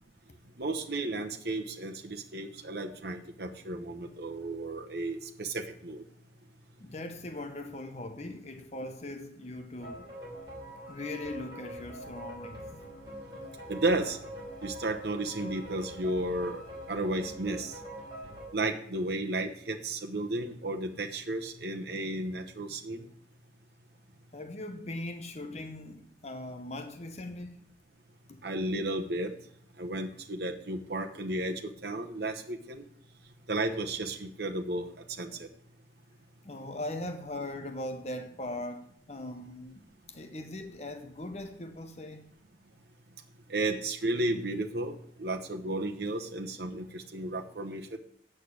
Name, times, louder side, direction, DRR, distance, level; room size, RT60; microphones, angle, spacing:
voice 1, 0.6-6.0 13.7-14.2 14.6-16.6 16.9-17.8 18.5-23.1 28.4-29.3 29.8-32.8 33.5-35.5 43.5-48.0, right 2 dB, 60° right, 1.0 m, -33 dB
voice 2, 6.8-10.1 10.9-12.8 24.3-27.6 28.3-28.4 36.4-42.3, left 1 dB, 35° left, 0.8 m, -40 dB
sound 1, 9.8-18.5, equal, 20° right, 5.8 m, -44 dB
8.4 x 6.5 x 8.3 m
head